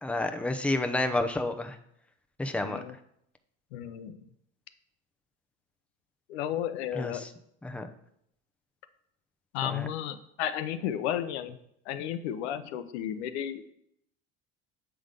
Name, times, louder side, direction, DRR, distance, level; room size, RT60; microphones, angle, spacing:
voice 1, 0.0-1.8 2.4-2.8 6.9-7.3 7.6-7.9 9.6-9.9, left 2 dB, 5° left, 7 dB, 0.7 m, -30 dB
voice 2, 2.6-2.9 3.7-4.2 6.3-7.3 9.5-11.6 11.9-13.6, left 10 dB, 80° left, 11 dB, 0.7 m, -33 dB
7.9 x 3.7 x 5.1 m, 0.72 s
hypercardioid pair, 80°, 32 cm